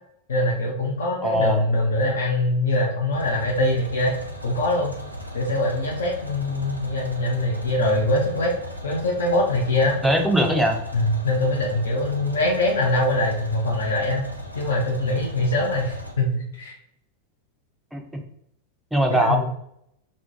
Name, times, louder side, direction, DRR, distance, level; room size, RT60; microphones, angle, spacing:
voice 1, 0.3-4.2 4.4-4.9 5.3-8.5 8.8-10.0 10.9-14.3 14.5-16.8 19.1-19.5, left 1 dB, 65° left, -2 dB, 0.5 m, -23 dB
voice 2, 1.2-1.6 10.0-10.8 17.9-18.2 18.9-19.5, right 1 dB, 5° right, 2 dB, 0.5 m, -21 dB
sound 1, 3.1-16.1, equal, 85° right, 0.4 m, -37 dB
2.5 x 2.1 x 2.7 m, 0.74 s
figure-of-eight pair, 90°, 0 cm